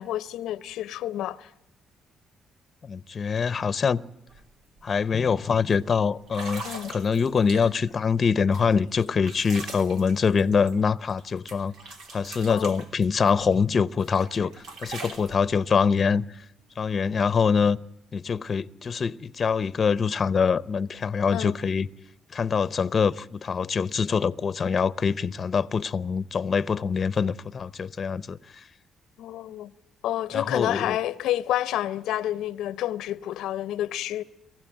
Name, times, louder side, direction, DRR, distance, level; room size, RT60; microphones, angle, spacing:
voice 1, 0.0-1.5 6.6-6.9 12.5-12.7 21.3-21.6 29.2-29.7 30.0-34.2, left 13 dB, 85° left, 0.7 m, -29 dB
voice 2, 2.8-4.0 4.8-6.6 6.9-11.7 12.1-14.5 14.8-16.2 16.8-17.8 18.1-21.9 22.3-28.4 30.3-31.0, left 6 dB, 40° left, 0.7 m, -24 dB
sound 1, 4.3-4.4 4.8-5.1 5.7-5.8 6.3-7.9 8.5-11.2 11.5-13.6 14.0-15.3, right 3 dB, 85° right, 3.0 m, -42 dB
23.0 x 15.5 x 8.8 m
cardioid pair, 90°, 0 cm